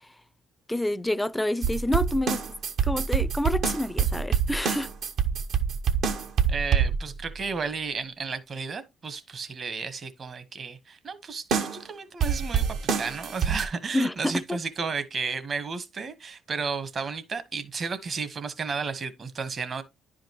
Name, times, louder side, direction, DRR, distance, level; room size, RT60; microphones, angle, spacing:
voice 1, 0.7-2.4 2.8-4.9 13.9-14.6, left 1 dB, 10° left, 0.4 m, -28 dB
sound 1, 1.6-7.3 11.5-11.8 12.2-13.7, right 7 dB, 70° right, 1.1 m, -25 dB
voice 2, 6.5-11.4 11.7-12.7 13.0-19.8, right 5 dB, 45° right, 1.2 m, -33 dB
10.5 x 5.1 x 3.0 m
supercardioid pair, 75°, 0 cm